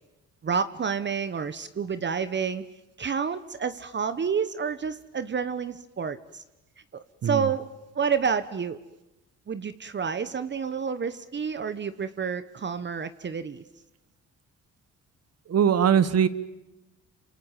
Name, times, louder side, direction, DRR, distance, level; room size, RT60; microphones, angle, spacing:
voice 1, 0.4-2.6 3.0-6.4 6.9-7.7 7.9-8.8 9.5-13.6, right 6 dB, 35° right, 13 dB, 1.1 m, -29 dB
voice 2, 15.5-16.3, right 8 dB, 55° right, 15 dB, 1.6 m, -21 dB
27.0 x 27.0 x 7.5 m, 0.97 s
cardioid pair, 90°, 30 cm